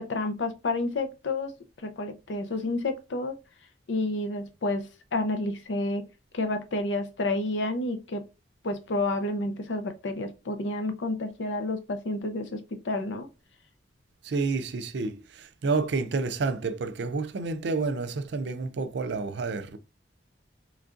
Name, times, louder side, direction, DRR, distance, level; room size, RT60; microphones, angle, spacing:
voice 1, 0.0-1.5 1.8-3.3 3.9-6.1 6.3-8.2 8.6-13.3, left 2 dB, 80° left, 0.5 m, -30 dB
voice 2, 14.2-19.8, right 4 dB, 70° right, 0.4 m, -29 dB
3.7 x 3.2 x 2.5 m
head